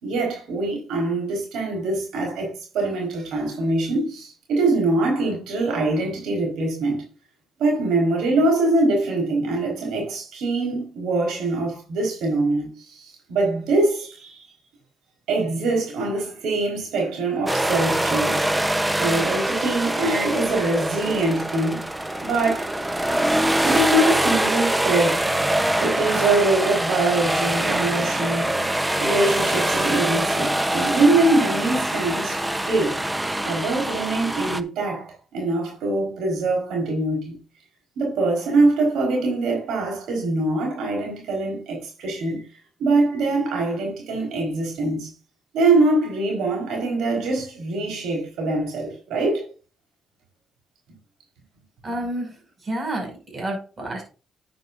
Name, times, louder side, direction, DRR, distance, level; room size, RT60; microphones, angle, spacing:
voice 1, 0.0-7.0 7.6-14.4 15.3-18.5 19.0-21.8 22.1-22.7 23.6-25.3 25.8-28.6 29.0-33.0 33.4-37.3 38.0-42.4 42.8-45.1 45.5-49.5, right 2 dB, 80° right, 4.5 m, -23 dB
sound 1, 17.5-34.6, right 1 dB, 10° right, 0.9 m, -24 dB
voice 2, 51.8-54.0, right 1 dB, 35° right, 6.1 m, -30 dB
10.5 x 9.4 x 2.6 m
cardioid pair, 90°, 0 cm